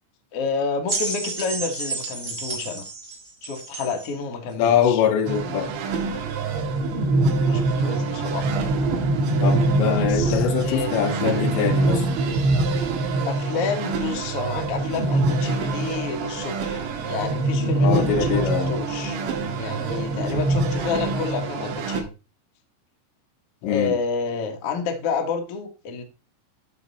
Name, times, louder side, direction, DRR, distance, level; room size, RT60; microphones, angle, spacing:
voice 1, 0.3-2.9 3.4-5.0 7.4-8.5 10.0-10.9 13.3-19.2 19.5-22.1 23.6-26.0, left 5 dB, 65° left, 1.5 m, -29 dB
sound 1, 0.9-4.1 5.0-5.1, right 3 dB, 45° right, 1.7 m, -31 dB
voice 2, 4.6-5.7 9.4-12.1 17.8-18.8 23.6-24.0, left 8 dB, 80° left, 3.3 m, -23 dB
sound 2, 5.3-22.0, right 3 dB, 80° right, 3.8 m, -24 dB
13.5 x 4.6 x 4.2 m
omnidirectional pair, 5.2 m